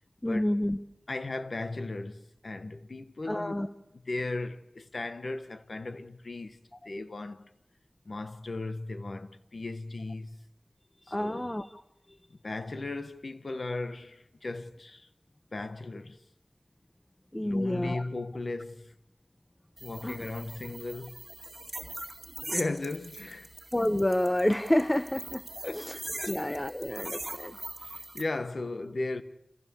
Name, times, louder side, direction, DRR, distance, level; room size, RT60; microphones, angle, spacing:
voice 1, 0.2-0.8 3.3-3.7 11.1-11.8 17.3-18.1 20.0-20.2 23.7-25.4 25.7-26.0 26.3-27.6, left 1 dB, 20° left, 0.8 m, -29 dB
voice 2, 1.1-6.6 6.8-7.5 8.1-10.4 11.1-11.5 12.3-15.1 15.5-16.2 17.4-18.9 19.8-21.2 22.4-23.5 25.6-26.4 27.8-29.2, left 2 dB, 70° left, 1.1 m, -37 dB
sound 1, 19.8-28.2, right 2 dB, 30° right, 2.1 m, -41 dB
29.0 x 15.5 x 7.0 m
wide cardioid pair, 55°, 0 cm